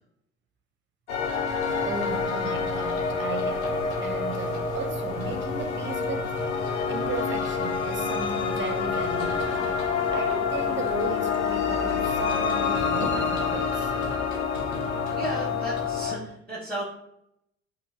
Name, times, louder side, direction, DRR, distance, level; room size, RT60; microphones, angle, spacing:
sound 1, 1.1-16.2, left 6 dB, 85° left, 0.5 m, -28 dB
sound 2, 1.1-16.1, left 1 dB, 55° left, 1.4 m, -42 dB
sound 3, 1.6-14.2, right 4 dB, 85° right, 0.5 m, -42 dB
voice 1, 1.9-6.4 6.9-9.8 10.1-13.9, right 4 dB, 35° right, 0.7 m, -35 dB
voice 2, 15.1-16.8, right 1 dB, 5° left, 1.5 m, -35 dB
5.3 x 2.8 x 2.9 m
figure-of-eight pair, 55°, 34 cm